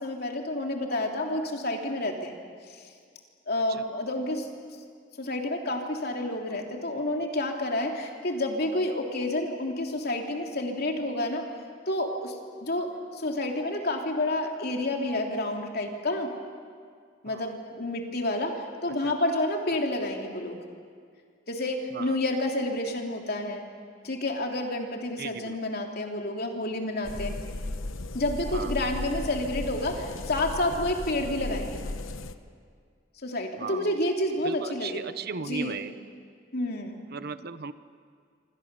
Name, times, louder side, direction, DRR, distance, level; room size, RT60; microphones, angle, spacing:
voice 1, 0.0-2.3 2.7-2.8 3.5-4.5 5.2-11.5 11.9-16.3 17.2-20.6 21.5-23.7 24.0-27.3 28.1-32.0 33.2-35.0 35.5-35.8 36.5-37.0, left 1 dB, 55° left, 2 dB, 3.1 m, -29 dB
voice 2, 25.2-25.6 28.5-28.7 33.6-34.0 34.4-35.9 37.1-37.7, right 5 dB, 55° right, 13 dB, 0.8 m, -36 dB
sound 1, 27.0-32.4, left 2 dB, 90° left, 1.0 m, -35 dB
27.0 x 25.5 x 6.9 m, 2.1 s
head